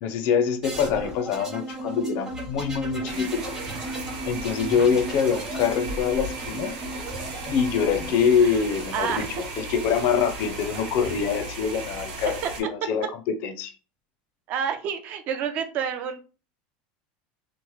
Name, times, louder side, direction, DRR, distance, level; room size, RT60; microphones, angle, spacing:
voice 1, 0.0-3.5 4.3-6.7 7.5-13.7, left 7 dB, 50° left, 0.4 m, -25 dB
sound 1, 0.6-9.2 10.3-10.9, right 1 dB, 15° right, 0.8 m, -35 dB
sound 2, 3.0-12.6, right 2 dB, 85° right, 1.1 m, -36 dB
voice 2, 8.9-9.4 12.4-12.5 14.5-16.2, right 7 dB, 40° right, 0.4 m, -28 dB
3.0 x 2.0 x 3.0 m
supercardioid pair, 165°, 4 cm